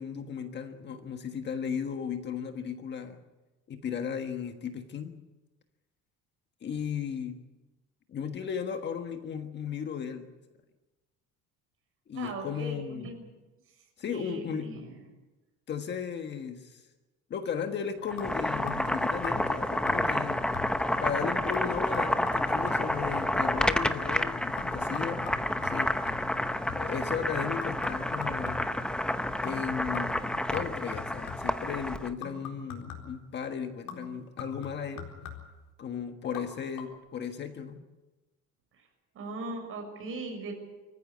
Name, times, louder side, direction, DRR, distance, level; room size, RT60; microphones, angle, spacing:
voice 1, 0.0-3.2 3.7-5.2 6.6-7.4 8.1-10.3 12.1-13.1 14.0-14.7 15.7-16.9 17.3-20.4 21.0-25.9 26.7-28.7 29.4-35.1 35.8-37.8, left 7 dB, 35° left, 6 dB, 1.5 m, -35 dB
voice 2, 12.1-13.3 14.1-14.8 39.1-40.5, right 3 dB, 45° right, 3 dB, 6.6 m, -39 dB
Boiling, 18.0-32.1, left 1 dB, 5° left, 0.8 m, -30 dB
sound 1, 18.2-19.0 19.2-19.6 19.9-20.2 20.5-21.0 21.5-24.0 24.6-27.0 27.6-28.9 29.4-29.7 29.9-31.6 32.2-33.2 33.9-35.6 36.2-36.5 36.7-36.8, left 7 dB, 80° left, 4.1 m, -44 dB
24.5 x 15.0 x 8.5 m, 1.1 s
cardioid pair, 150°, 31 cm